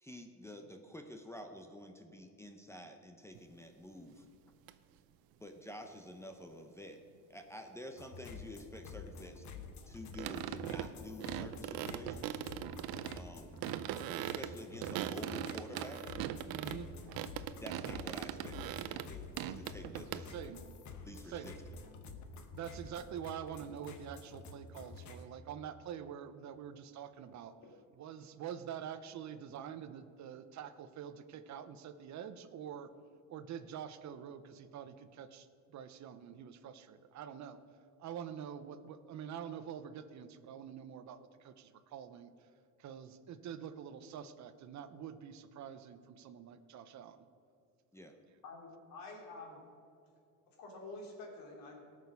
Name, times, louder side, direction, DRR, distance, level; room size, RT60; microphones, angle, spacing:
voice 1, 0.0-4.2 5.4-7.0 7.3-9.5 9.9-12.4 13.2-13.6 14.1-16.0 17.6-20.3 21.0-21.5 47.9-48.1, left 1 dB, 10° left, 5 dB, 0.7 m, -49 dB
sound 1, 3.3-3.4 4.7-4.8 10.1-10.9 11.2-13.2 13.6-16.8 17.1-19.1 19.4-20.2, right 12 dB, 85° right, 0.7 m, -40 dB
sound 2, 8.0-25.3, left 4 dB, 55° left, 1.1 m, -50 dB
voice 2, 16.4-16.9 20.1-20.6 21.3-21.5 22.5-27.5 28.0-32.9 33.3-37.6 38.0-42.3 42.8-47.2, right 8 dB, 55° right, 11 dB, 0.8 m, -46 dB
voice 3, 48.4-49.6 50.6-51.9, left 2 dB, 75° left, 0 dB, 3.1 m, -48 dB
18.5 x 6.5 x 5.4 m, 2.5 s
cardioid pair, 145°, 34 cm